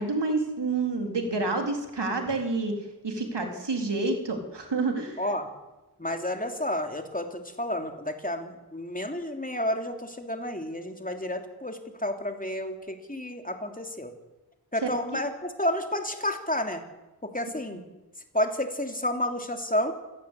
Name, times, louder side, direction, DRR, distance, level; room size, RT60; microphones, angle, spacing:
voice 1, 0.0-2.7 3.0-5.2 14.8-14.9 17.7-17.8, right 3 dB, 85° right, 4 dB, 4.0 m, -28 dB
voice 2, 6.0-14.1 14.7-16.8 17.2-17.8 18.3-19.9, left 1 dB, 20° left, 5 dB, 3.1 m, -30 dB
27.5 x 17.5 x 8.5 m, 1.1 s
wide cardioid pair, 75°, 41 cm